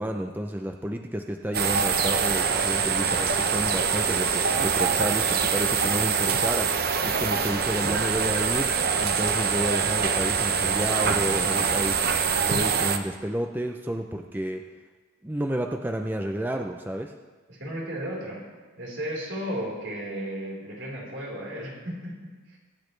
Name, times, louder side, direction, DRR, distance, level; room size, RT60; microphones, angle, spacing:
voice 1, 0.0-14.6 15.2-17.1, equal, 10° right, 3 dB, 0.5 m, -31 dB
sound 1, 1.5-13.0, right 6 dB, 50° right, 0.7 m, -24 dB
voice 2, 17.5-18.4 18.8-22.6, equal, 70° right, -4 dB, 4.2 m, -34 dB
23.5 x 8.7 x 3.3 m, 1.3 s
head